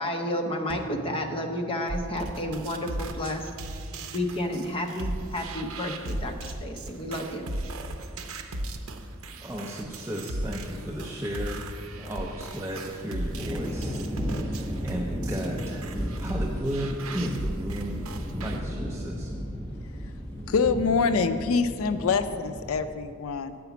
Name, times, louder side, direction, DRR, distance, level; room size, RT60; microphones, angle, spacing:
voice 1, 0.0-3.5 4.1-7.5, left 1 dB, 25° left, 3 dB, 0.7 m, -31 dB
sound 1, 0.7-2.7, equal, 55° right, 1.3 m, -43 dB
sound 2, 1.9-18.6, right 1 dB, 75° right, 0.6 m, -36 dB
voice 2, 9.4-11.7 12.0-15.9 16.2-19.4, equal, 15° right, -2 dB, 0.5 m, -34 dB
sound 3, 13.4-22.8, equal, 5° left, 1.1 m, -34 dB
voice 3, 20.5-23.6, left 5 dB, 70° left, 10 dB, 0.4 m, -25 dB
8.2 x 5.0 x 6.9 m, 2.3 s
head